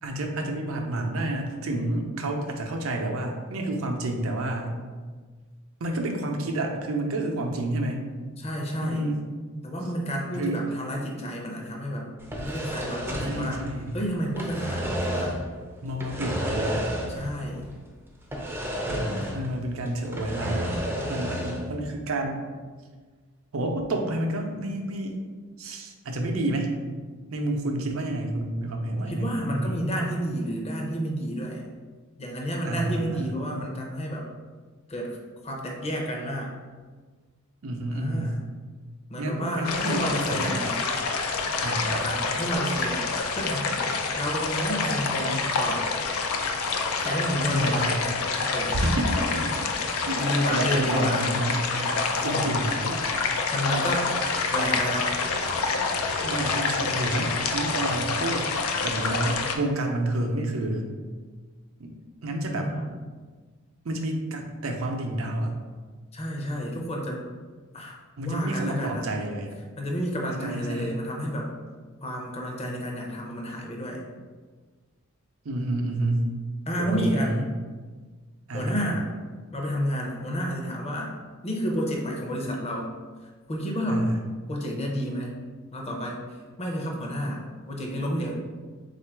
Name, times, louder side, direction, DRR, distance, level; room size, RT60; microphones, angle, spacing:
voice 1, 0.0-4.8 5.8-8.0 8.8-9.2 10.3-10.7 13.1-14.0 15.8-16.9 18.9-20.7 21.1-22.5 23.5-25.1 25.6-26.7 27.3-29.8 32.6-33.3 37.6-38.3 39.2-40.6 41.6-42.1 47.5-48.0 48.4-49.7 50.0-50.2 50.5-51.7 52.2-53.1 56.2-58.5 58.8-60.9 61.8-61.9 62.2-62.7 63.8-65.5 68.2-69.6 70.4-71.0 75.4-76.3 76.8-77.4 78.5-79.0 83.9-84.2, right 1 dB, 75° right, 3 dB, 0.6 m, -29 dB
voice 2, 8.4-9.1 9.6-12.1 12.4-13.6 13.9-15.4 17.1-17.6 28.9-31.7 32.2-34.3 34.9-35.2 35.4-36.5 37.9-38.4 39.1-40.9 42.0-43.1 43.4-43.8 44.2-45.8 47.0-47.9 48.4-48.8 50.0-51.2 51.7-52.0 52.3-52.4 53.5-54.1 54.5-55.2 62.5-62.9 66.1-67.2 67.7-67.9 68.2-69.1 69.8-71.5 72.0-74.0 76.7-77.5 78.5-79.0 79.5-81.1 81.4-82.9 83.5-84.1 84.5-85.3 85.7-86.2 86.6-88.3, equal, 30° left, -1 dB, 0.6 m, -30 dB
sound 1, 12.2-14.0 14.2-15.5 16.0-17.4 17.6-17.7 18.3-19.6 19.9-21.7, equal, 10° right, 0.5 m, -31 dB
sound 2, 39.7-59.6, left 4 dB, 90° left, 0.4 m, -27 dB
3.6 x 2.5 x 4.6 m, 1.4 s
head